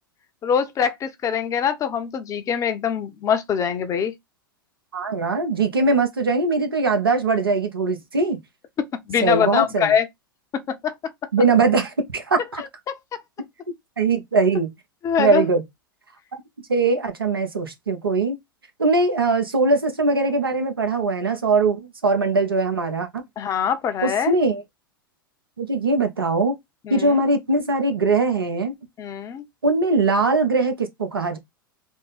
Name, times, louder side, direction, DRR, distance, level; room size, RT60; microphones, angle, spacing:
voice 1, 0.4-4.1 9.1-10.1 10.5-11.1 12.6-12.7 15.0-15.5 23.4-24.3 26.8-27.2 29.0-29.4, left 7 dB, 30° left, 0.7 m, -23 dB
voice 2, 4.9-8.4 9.2-9.9 11.3-12.6 14.0-14.7 15.2-15.6 16.7-18.4 18.8-23.2 24.0-24.6 25.6-26.6 26.9-28.7 29.6-31.4, right 3 dB, 90° right, 1.0 m, -21 dB
3.7 x 2.1 x 4.0 m
hypercardioid pair, 100°, 12 cm